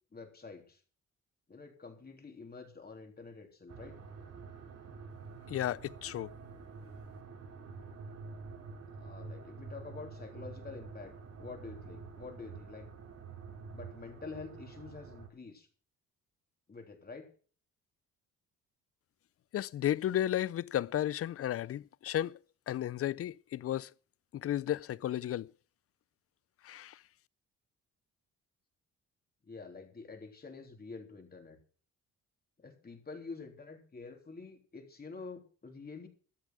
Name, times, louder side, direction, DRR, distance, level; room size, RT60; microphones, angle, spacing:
voice 1, 0.1-0.8 1.5-4.0 8.9-12.9 13.7-15.7 16.7-17.3 29.4-31.6 32.6-36.1, left 4 dB, 30° left, 3.5 m, -47 dB
sound 1, 3.7-15.3, right 4 dB, 55° right, 2.9 m, -48 dB
voice 2, 5.5-6.3 19.5-22.4 22.7-23.9 24.3-25.5 26.6-27.0, left 12 dB, 50° left, 0.5 m, -33 dB
13.5 x 8.5 x 6.3 m
cardioid pair, 90°, 30 cm